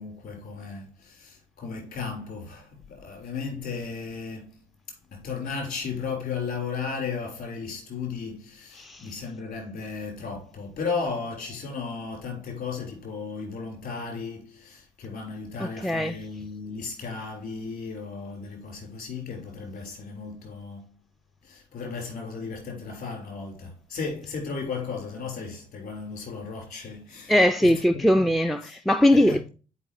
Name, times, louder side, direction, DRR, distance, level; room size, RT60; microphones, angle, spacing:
voice 1, 0.0-4.6 5.1-20.9 21.4-28.3 28.6-28.8 29.1-29.4, left 5 dB, 50° left, 3.4 m, -35 dB
voice 2, 8.8-9.1 15.6-16.2 27.3-29.5, left 1 dB, ahead, 0.4 m, -21 dB
9.5 x 4.7 x 2.8 m
figure-of-eight pair, 45°, 19 cm